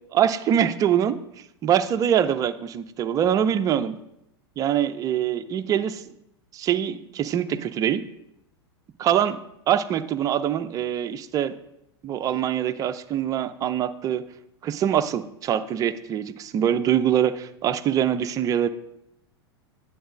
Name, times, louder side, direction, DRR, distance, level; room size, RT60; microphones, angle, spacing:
voice 1, 0.1-1.2 1.6-3.9 4.6-6.0 6.5-8.0 9.0-9.4 9.7-11.5 12.0-14.2 14.6-18.7, right 9 dB, 25° right, 11 dB, 0.4 m, -24 dB
10.0 x 3.9 x 5.1 m, 0.81 s
figure-of-eight pair, 90°, 14 cm